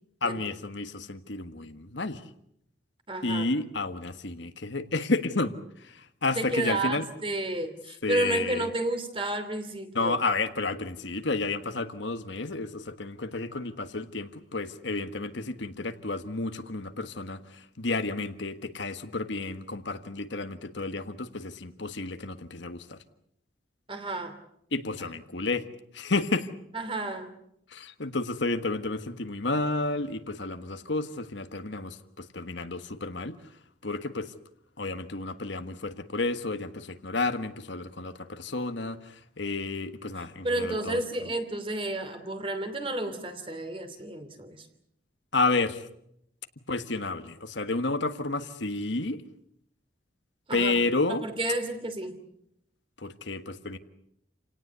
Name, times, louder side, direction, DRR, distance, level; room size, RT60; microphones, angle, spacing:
voice 1, 0.2-2.2 3.2-7.1 8.0-8.7 9.9-23.0 24.7-25.6 25.9-26.5 27.7-33.3 33.8-34.3 34.8-41.0 45.3-45.9 46.7-49.2 50.5-51.2 53.0-53.8, left 3 dB, 70° left, 9 dB, 1.5 m, -31 dB
voice 2, 3.1-3.5 6.3-10.2 23.9-24.4 25.0-25.1 26.7-27.3 40.4-44.7 50.5-50.7 51.1-52.2, right 2 dB, 30° right, 8 dB, 2.8 m, -31 dB
29.0 x 18.0 x 8.2 m, 0.75 s
head